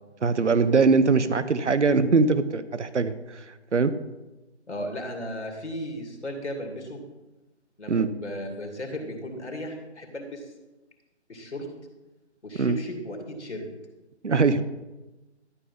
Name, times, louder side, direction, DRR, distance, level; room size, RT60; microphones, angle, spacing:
voice 1, 0.2-3.4 3.7-3.9 7.9-8.1 12.6-12.8 14.2-14.6, right 4 dB, 90° right, 13 dB, 0.8 m, -22 dB
voice 2, 4.7-7.0 7.8-10.5 11.3-11.7 12.4-13.6, equal, 75° left, 2 dB, 2.6 m, -35 dB
12.5 x 5.4 x 5.5 m, 1.1 s
figure-of-eight pair, 155°, 35 cm